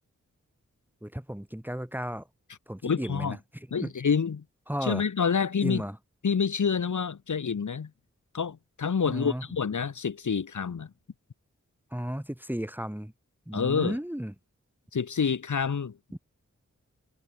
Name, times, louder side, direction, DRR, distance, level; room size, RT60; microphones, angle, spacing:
voice 1, 1.0-2.3 2.7-3.4 3.8-3.9 4.7-5.0 5.6-6.0 9.0-9.4 11.9-13.1 13.5-14.3, equal, 5° right, 2.3 m, -34 dB
voice 2, 2.8-3.4 3.7-4.4 4.8-5.8 6.2-7.9 8.3-10.9 13.5-14.0 14.9-16.0, left 6 dB, 75° left, 1.6 m, -27 dB
wide cardioid pair, 55°, 30 cm